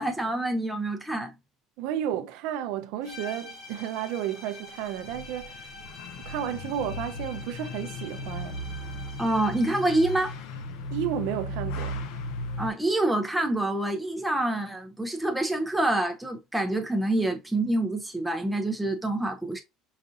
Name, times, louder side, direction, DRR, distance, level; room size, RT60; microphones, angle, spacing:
voice 1, 0.0-1.3 9.2-10.3 12.6-19.6, right 1 dB, ahead, 0.5 m, -27 dB
voice 2, 1.8-5.7 6.3-8.6 10.9-12.0, right 10 dB, 65° right, 0.4 m, -32 dB
sound 1, 3.0-10.4, left 2 dB, 40° left, 1.2 m, -46 dB
sound 2, 4.6-12.7, left 1 dB, 60° left, 0.6 m, -36 dB
4.8 x 2.7 x 2.4 m
cardioid pair, 165°, 0 cm